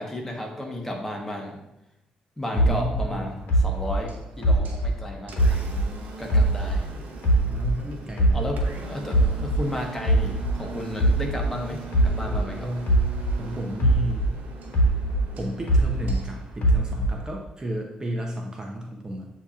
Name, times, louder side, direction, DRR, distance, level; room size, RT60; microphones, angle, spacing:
voice 1, 0.0-1.6 2.4-4.1 4.4-5.7 6.2-6.9 8.3-12.7, left 1 dB, 10° left, 0 dB, 1.1 m, -33 dB
voice 2, 2.5-3.3 7.5-8.4 12.3-12.8 13.4-14.3 15.3-19.3, right 1 dB, 25° right, 1 dB, 0.6 m, -33 dB
sound 1, 2.6-6.0 6.3-8.8 9.1-13.5 13.8-16.3 16.6-17.3, right 1 dB, 75° left, 1.0 m, -22 dB
Engine, 3.2-17.3, right 5 dB, 70° right, 0.7 m, -42 dB
7.9 x 2.8 x 2.4 m, 0.90 s
cardioid pair, 75°, 3 cm